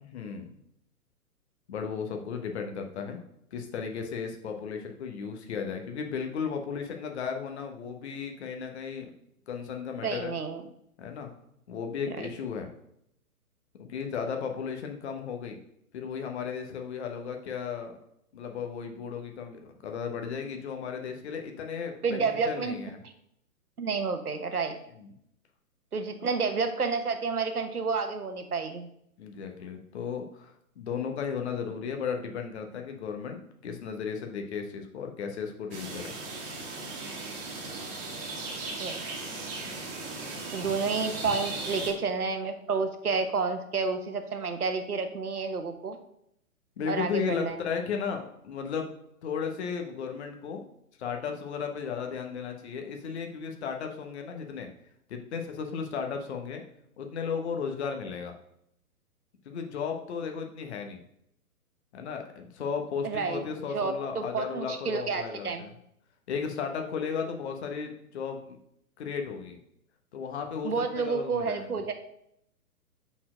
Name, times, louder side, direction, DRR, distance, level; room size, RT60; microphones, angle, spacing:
voice 1, 0.1-0.5 1.7-3.2 3.5-9.1 9.5-10.3 11.0-11.3 11.7-12.7 13.8-15.6 15.9-18.0 18.3-23.0 24.9-25.1 29.2-36.1 39.6-39.7 40.2-40.3 41.2-41.3 46.8-48.9 49.2-50.6 51.0-54.7 55.1-56.6 57.0-58.3 59.4-61.0 61.9-65.7 66.3-68.6 69.0-69.6 70.1-71.7, left 6 dB, 45° left, 4 dB, 1.1 m, -35 dB
voice 2, 10.0-10.6 12.1-12.3 22.0-22.7 23.8-24.8 25.9-28.9 38.8-39.0 40.5-46.0 46.9-47.6 63.0-63.5 63.7-65.7 70.6-71.9, right 4 dB, 75° right, 7 dB, 1.2 m, -30 dB
Forest ambience, 35.7-41.9, right 3 dB, 30° right, 1.6 m, -37 dB
5.7 x 4.4 x 6.1 m, 0.74 s
figure-of-eight pair, 120°, 44 cm